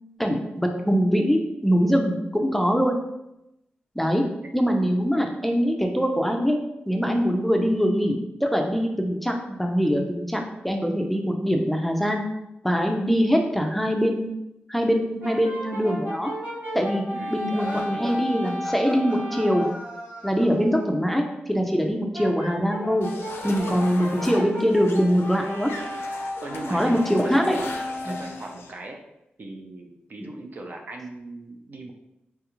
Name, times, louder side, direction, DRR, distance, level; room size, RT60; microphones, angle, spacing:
voice 1, 0.2-3.0 4.0-4.2 4.5-6.6 6.9-12.2 12.6-14.3 14.7-16.3 16.7-17.1 17.3-19.6 20.2-23.1 23.4-25.7 26.7-27.6 28.1-28.2, equal, 5° left, 2 dB, 0.4 m, -23 dB
Brass instrument, 15.2-19.8 22.1-28.5, equal, 70° right, 1.4 m, -34 dB
sound 1, 17.5-21.0, equal, 30° right, 0.9 m, -40 dB
sound 2, 23.0-28.7, left 3 dB, 80° left, 0.4 m, -39 dB
voice 2, 26.4-27.0 27.2-27.8 28.0-29.0 29.4-31.9, right 2 dB, 50° right, 2 dB, 0.5 m, -38 dB
3.2 x 2.3 x 3.0 m, 0.87 s
cardioid pair, 60°, 4 cm